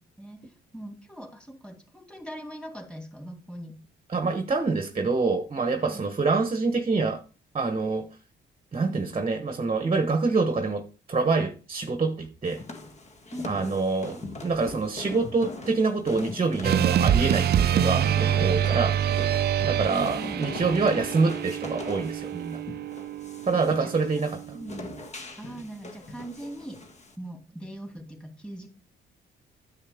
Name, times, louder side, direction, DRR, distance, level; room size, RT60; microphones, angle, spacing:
voice 1, 0.2-3.8 5.8-6.1 8.7-9.1 13.3-13.6 19.9-20.4 23.5-25.0 25.4-26.8 27.2-28.7, right 1 dB, 5° left, 2 dB, 2.7 m, -41 dB
voice 2, 4.1-7.2 7.5-8.1 8.7-12.6 13.4-19.0 19.6-22.6 23.5-24.4, right 4 dB, 30° right, 8 dB, 1.1 m, -26 dB
sound 1, 12.4-27.1, left 2 dB, 35° left, 1.5 m, -41 dB
sound 2, 16.6-25.0, right 10 dB, 55° right, 0.5 m, -26 dB
9.8 x 7.4 x 3.5 m, 0.36 s
cardioid pair, 90°, 20 cm